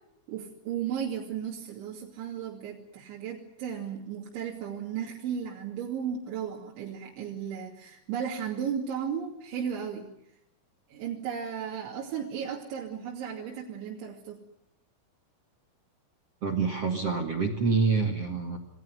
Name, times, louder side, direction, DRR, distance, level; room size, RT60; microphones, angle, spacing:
voice 1, 0.3-10.1 10.9-14.4, right 8 dB, 65° right, -1 dB, 4.9 m, -35 dB
voice 2, 16.4-18.6, right 4 dB, 50° right, 8 dB, 1.9 m, -26 dB
27.5 x 20.0 x 9.5 m, 0.74 s
omnidirectional pair, 6.0 m